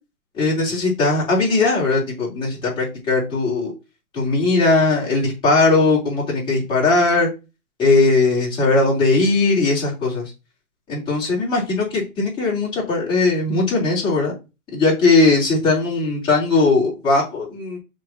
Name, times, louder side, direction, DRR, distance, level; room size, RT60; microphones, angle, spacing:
voice 1, 0.4-3.7 4.1-7.3 7.8-10.2 10.9-14.3 14.7-17.8, left 3 dB, 10° left, -5 dB, 3.6 m, -19 dB
6.1 x 4.6 x 5.7 m, 0.28 s
hypercardioid pair, 160°, 43 cm